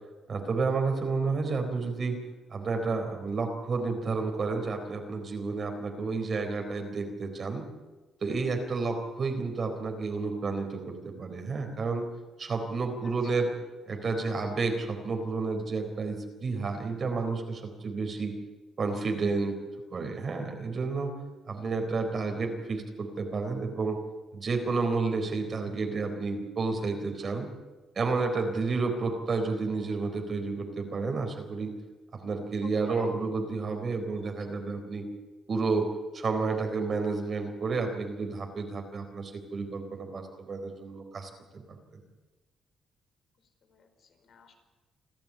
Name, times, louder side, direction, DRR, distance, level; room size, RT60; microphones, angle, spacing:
voice 1, 0.3-2.2 2.5-7.7 8.2-12.1 12.4-13.5 13.9-18.4 18.8-19.6 19.9-21.1 21.5-24.0 24.3-27.5 28.0-31.7 32.2-35.1 35.5-35.9 36.1-42.0, right 4 dB, 45° right, 4 dB, 4.1 m, -31 dB
voice 2, 13.0-13.5 32.6-33.1 43.7-44.5, left 5 dB, 60° left, 6 dB, 4.9 m, -50 dB
28.0 x 12.5 x 8.7 m, 1.2 s
cardioid pair, 105°, 0 cm